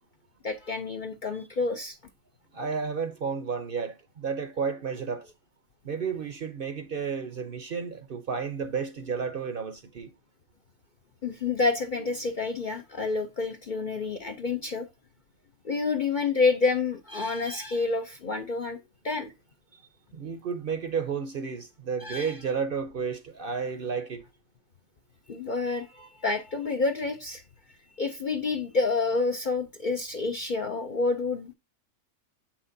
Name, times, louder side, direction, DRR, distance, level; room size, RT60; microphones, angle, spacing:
voice 1, 0.4-2.0 11.2-14.9 15.6-18.8 19.0-19.3 22.0-22.3 25.3-27.4 28.0-31.5, left 4 dB, 50° left, 0.6 m, -28 dB
voice 2, 2.5-5.3 5.8-10.1 20.1-24.2, right 6 dB, 50° right, 0.8 m, -32 dB
7.3 x 5.8 x 2.7 m
omnidirectional pair, 1.4 m